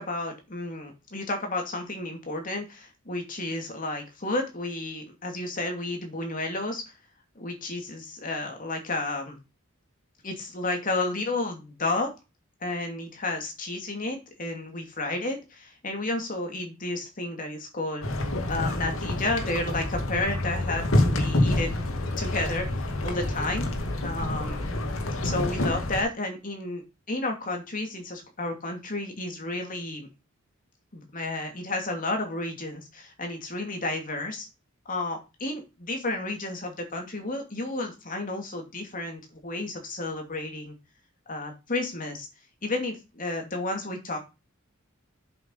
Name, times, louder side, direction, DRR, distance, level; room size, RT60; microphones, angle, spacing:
voice 1, 0.0-6.8 7.4-9.4 10.2-12.1 12.6-21.9 22.2-23.7 24.0-24.7 25.2-30.1 30.9-34.5 34.9-40.7 41.3-42.3 42.6-44.2, left 2 dB, 40° left, 3 dB, 2.6 m, -32 dB
sound 1, 18.0-26.0, left 1 dB, 70° left, 2.2 m, -27 dB
7.9 x 6.4 x 5.5 m, 0.27 s
head